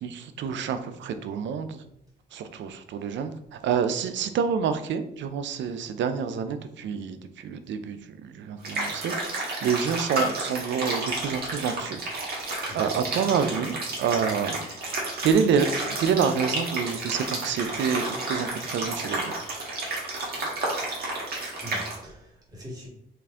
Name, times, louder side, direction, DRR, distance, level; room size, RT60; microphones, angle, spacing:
voice 1, 0.0-1.8 2.3-9.1 9.6-12.0 12.7-14.6 15.2-15.7 16.0-19.3, right 6 dB, 70° right, 9 dB, 0.5 m, -27 dB
sound 1, 8.6-22.0, right 2 dB, 50° right, 1.4 m, -31 dB
voice 2, 12.7-13.0 21.6-22.9, equal, 20° right, -4 dB, 1.6 m, -42 dB
4.5 x 2.5 x 3.5 m, 0.74 s
cardioid pair, 90°, 20 cm